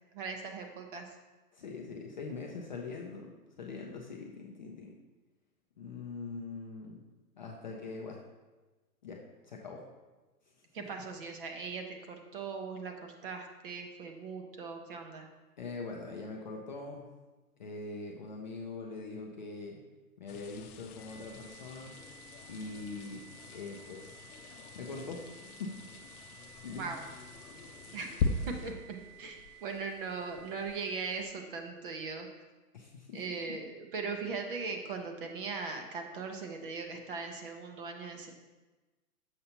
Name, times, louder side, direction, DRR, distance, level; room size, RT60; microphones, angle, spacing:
voice 1, 0.1-1.1 10.7-15.3 26.8-27.0 27.9-28.2 28.5-32.3 33.1-38.3, right 4 dB, 35° right, 4 dB, 0.6 m, -39 dB
voice 2, 1.5-4.9 5.8-7.0 7.4-8.2 9.0-9.8 10.8-10.9 15.6-17.1 17.6-19.8 20.2-22.0 22.5-24.2 24.7-25.2 25.5-25.8 26.6-26.9 32.7-33.5, left 3 dB, 30° left, -1 dB, 0.4 m, -43 dB
sound 1, 20.3-31.3, left 4 dB, 65° left, 0.7 m, -41 dB
sound 2, 21.0-31.0, right 19 dB, 85° right, 1.7 m, -56 dB
6.7 x 5.6 x 2.8 m, 1.2 s
hypercardioid pair, 145°, 47 cm